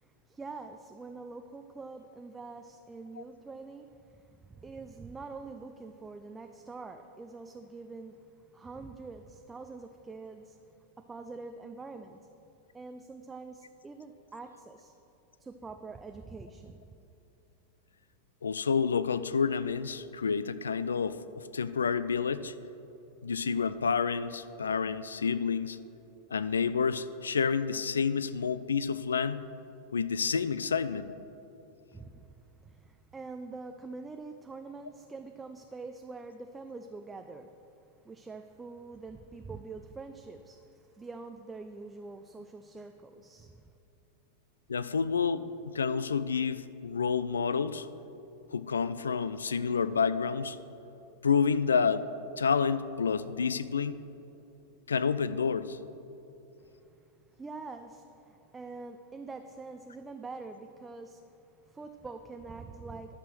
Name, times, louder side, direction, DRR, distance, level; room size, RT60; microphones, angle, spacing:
voice 1, 0.0-10.6 11.0-12.3 12.7-14.9 15.4-16.9 31.9-32.3 32.6-37.5 38.0-43.6 56.6-56.7 57.0-63.2, right 3 dB, 15° right, 6 dB, 0.4 m, -45 dB
voice 2, 18.4-21.2 21.5-22.5 23.2-25.8 26.3-29.4 29.9-31.1 44.7-47.9 48.5-50.6 51.2-52.1 52.4-54.0 54.9-55.8, left 6 dB, 70° left, 14 dB, 0.4 m, -29 dB
11.5 x 6.1 x 6.0 m, 2.9 s
figure-of-eight pair, 90°, 0 cm